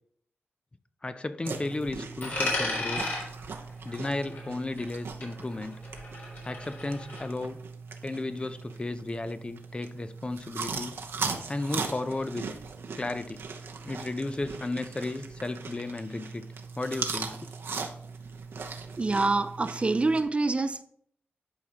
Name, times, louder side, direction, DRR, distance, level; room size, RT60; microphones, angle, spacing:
voice 1, 1.0-3.1 3.8-5.8 6.4-7.6 8.0-11.0 11.5-12.5 13.0-13.4 13.8-16.5 16.8-17.5, left 2 dB, 25° left, 0.5 m, -34 dB
sound 1, 1.5-20.2, right 4 dB, 85° right, 0.8 m, -39 dB
Coin (dropping), 2.2-5.0 5.2-7.2, left 2 dB, 60° left, 3.4 m, -35 dB
voice 2, 19.0-20.8, right 3 dB, 30° right, 0.4 m, -26 dB
11.0 x 4.9 x 2.9 m
wide cardioid pair, 85°, 4 cm